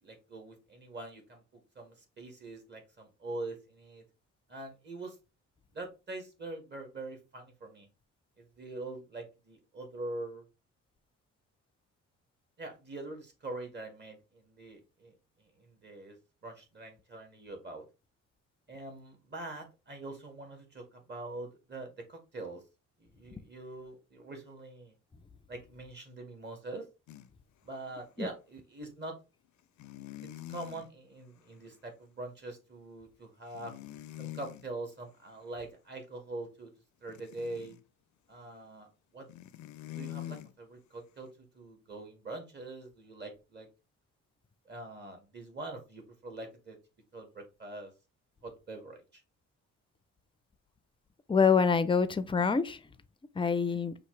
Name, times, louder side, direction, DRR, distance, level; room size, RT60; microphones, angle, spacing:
voice 1, 0.0-4.0 4.5-5.2 5.7-7.9 8.4-10.4 12.6-16.2 16.4-17.8 18.7-22.6 23.0-25.0 25.5-26.9 27.6-29.2 30.5-33.7 34.2-36.7 37.0-37.8 38.3-39.3 39.9-41.3 41.5-43.7 44.7-46.8 47.1-47.9 48.4-49.2 53.6-53.8, right 2 dB, 35° right, 1.9 m, -44 dB
sound 1, 27.1-27.3 27.9-28.0 29.8-30.9 33.6-34.7 37.1-37.8 39.3-40.5, left 13 dB, 75° left, 0.5 m, -44 dB
voice 2, 51.3-52.8 53.4-53.9, left 5 dB, 15° left, 0.5 m, -26 dB
5.8 x 2.6 x 3.2 m
cardioid pair, 90°, 30 cm